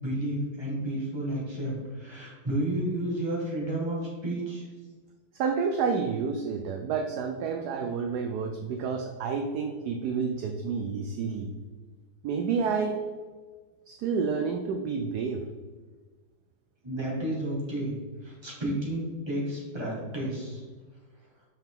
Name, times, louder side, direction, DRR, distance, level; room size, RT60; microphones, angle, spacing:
voice 1, 0.0-4.7 16.8-18.0 18.2-20.6, right 1 dB, 15° right, -5 dB, 1.8 m, -31 dB
voice 2, 5.3-11.5 12.2-13.0 13.9-15.4, right 5 dB, 70° right, 4 dB, 1.0 m, -29 dB
5.8 x 5.7 x 3.6 m, 1.4 s
omnidirectional pair, 2.0 m